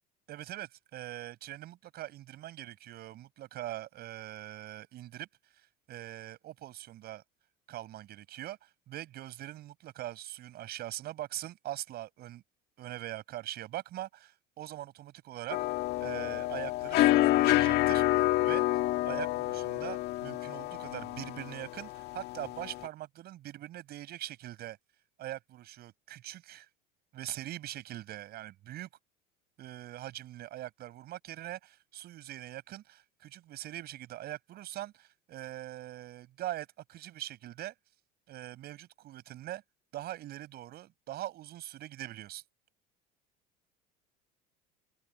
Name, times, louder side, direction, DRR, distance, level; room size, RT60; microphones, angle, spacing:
voice 1, 0.3-5.3 5.5-7.2 7.7-12.4 12.8-15.7 16.0-18.6 19.0-24.8 25.2-26.7 27.1-28.9 29.6-37.7 38.3-39.6 39.9-42.4, right 14 dB, 55° right, 6.9 m, -42 dB
sound 1, 15.5-22.9, left 16 dB, 60° left, 2.0 m, -28 dB
hypercardioid pair, 80°, 20 cm